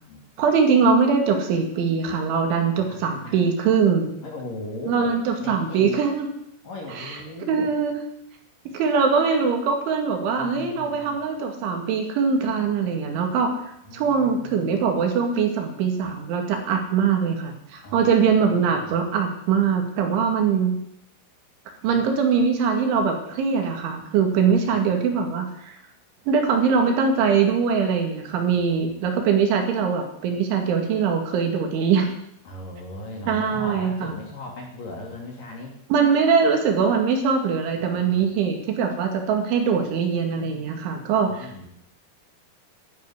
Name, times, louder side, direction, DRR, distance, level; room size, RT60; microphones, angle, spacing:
voice 1, 0.4-4.1 4.9-6.3 6.9-7.2 7.5-8.0 8.7-20.8 21.8-25.7 26.3-32.1 33.3-34.2 35.9-41.7, right 6 dB, 70° right, 4 dB, 4.4 m, -22 dB
voice 2, 2.7-3.4 4.2-5.1 5.4-6.0 6.6-7.7 10.4-11.2 13.9-14.8 17.8-18.1 18.4-18.9 21.8-22.1 24.3-24.9 32.5-35.8 37.8-38.3 41.4-41.7, left 2 dB, 45° left, 0 dB, 4.0 m, -38 dB
12.5 x 11.0 x 9.7 m, 0.73 s
omnidirectional pair, 5.9 m